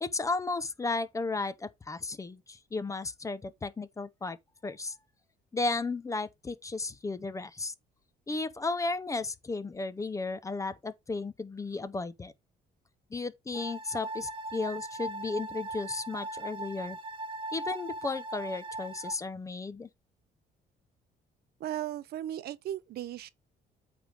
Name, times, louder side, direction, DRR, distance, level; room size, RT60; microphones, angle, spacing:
voice 1, 0.0-4.4 4.6-5.0 5.5-7.7 8.3-12.3 13.1-17.0 17.5-19.9, left 3 dB, 20° left, 0.6 m, -34 dB
sound 1, 13.5-19.1, right 2 dB, 30° right, 0.8 m, -39 dB
voice 2, 21.6-23.3, right 12 dB, 65° right, 0.7 m, -36 dB
8.6 x 3.4 x 5.1 m
cardioid pair, 125°, 17 cm